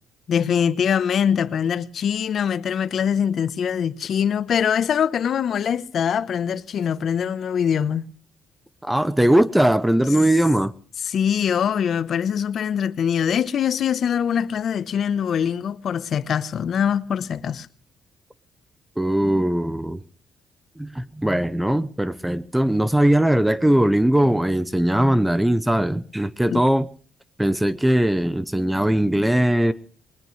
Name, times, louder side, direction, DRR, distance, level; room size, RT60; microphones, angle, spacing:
voice 1, 0.3-8.1 11.0-17.7 26.5-26.6, left 8 dB, 60° left, 0.9 m, -23 dB
voice 2, 8.8-10.7 19.0-20.0 20.8-26.9 27.4-29.7, right 1 dB, 5° right, 0.7 m, -20 dB
21.0 x 20.0 x 3.2 m
cardioid pair, 90°, 0 cm